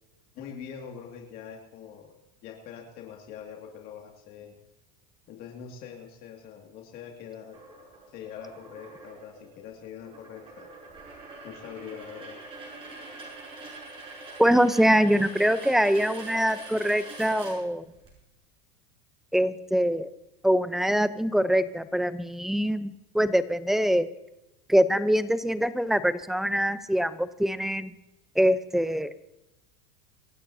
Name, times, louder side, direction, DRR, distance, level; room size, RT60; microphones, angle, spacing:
voice 1, 0.3-2.1 2.4-4.6 5.3-7.6 8.1-10.7 11.4-12.4, left 8 dB, 50° left, 1 dB, 2.3 m, -43 dB
sound 1, 7.5-18.1, right 2 dB, 25° right, 7.1 m, -44 dB
voice 2, 14.4-17.8 19.3-20.1 20.4-24.1 24.7-27.9 28.4-29.1, equal, ahead, 13 dB, 0.7 m, -24 dB
26.5 x 13.5 x 2.8 m, 0.93 s
supercardioid pair, 125°, 20 cm